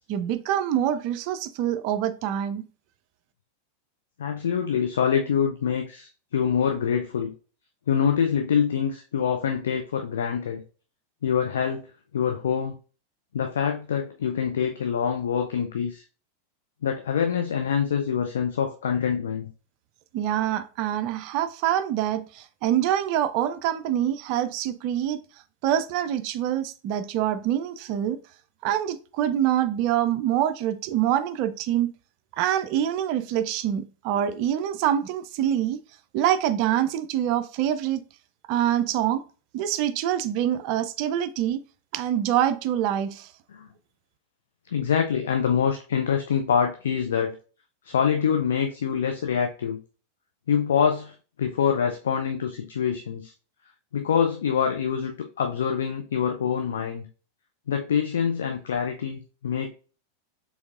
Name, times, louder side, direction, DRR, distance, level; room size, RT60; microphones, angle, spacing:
voice 1, 0.1-2.7 20.1-25.2 25.6-28.2 28.6-31.9 32.4-35.8 36.1-38.0 38.5-39.2 39.5-41.6 41.9-43.3, right 11 dB, 45° right, 0.4 m, -25 dB
voice 2, 4.2-7.3 7.9-10.6 11.2-11.9 12.1-12.7 13.3-16.0 16.8-19.5 43.5-43.7 44.7-47.4 47.8-49.8 50.5-53.3 53.9-55.1 55.4-57.1 57.7-59.7, left 7 dB, 65° left, 0.4 m, -25 dB
4.4 x 3.5 x 2.5 m
figure-of-eight pair, 90°, 0 cm